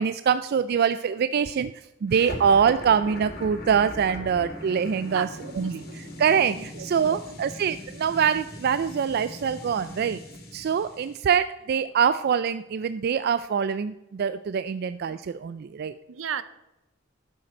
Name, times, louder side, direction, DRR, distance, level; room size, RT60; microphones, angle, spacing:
voice 1, 0.0-5.3 5.6-10.2 10.5-15.9, right 7 dB, 55° right, 13 dB, 0.3 m, -24 dB
sound 1, 2.1-11.2, left 1 dB, 55° left, 2.3 m, -40 dB
voice 2, 5.1-6.0 6.3-7.2 16.1-16.4, right 7 dB, 80° right, 14 dB, 0.7 m, -36 dB
11.5 x 7.8 x 4.4 m, 0.93 s
head